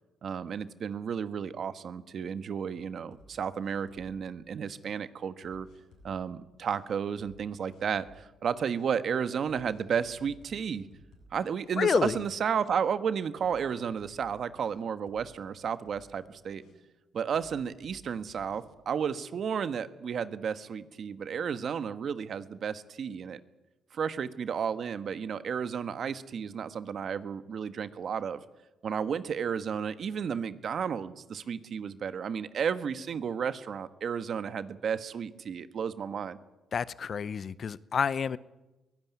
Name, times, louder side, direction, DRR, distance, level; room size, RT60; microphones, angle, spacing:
voice 1, 0.2-5.7 6.0-10.9 11.3-16.6 17.1-23.4 23.9-28.4 28.8-36.4, right 7 dB, 55° right, 12 dB, 1.4 m, -33 dB
sound 1, 3.1-4.2 4.7-4.8 5.4-6.2 6.7-6.8 7.2-7.4 7.7-8.2 8.7-8.9 9.5-11.4 11.6-12.4 12.7-12.8 13.4-14.7 15.1-15.3 15.6-16.1 16.6-16.7 17.3-18.7, left 1 dB, 80° left, 7.9 m, -57 dB
voice 2, 11.8-12.2 36.7-38.4, left 6 dB, 50° left, 18 dB, 0.7 m, -29 dB
23.0 x 16.5 x 9.5 m, 1.1 s
cardioid pair, 90°, 0 cm